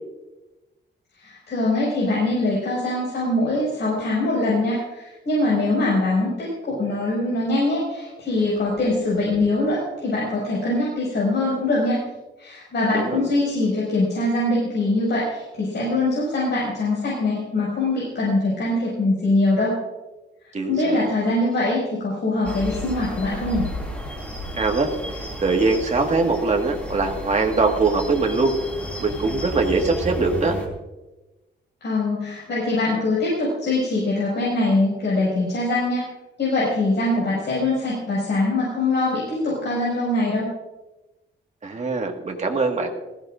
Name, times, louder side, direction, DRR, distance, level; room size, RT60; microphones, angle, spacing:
voice 1, 1.2-12.0 12.4-19.8 20.7-23.7 31.8-36.0 36.4-40.5, left 2 dB, 60° left, -6 dB, 6.0 m, -23 dB
voice 2, 12.9-13.3 20.5-21.0 24.6-24.9 25.4-28.6 29.0-30.6 41.6-42.9, right 3 dB, 35° right, 2 dB, 1.8 m, -22 dB
sound 1, 22.4-30.7, equal, 5° left, 2.6 m, -33 dB
19.5 x 16.0 x 2.6 m, 1.1 s
wide cardioid pair, 140°, 20 cm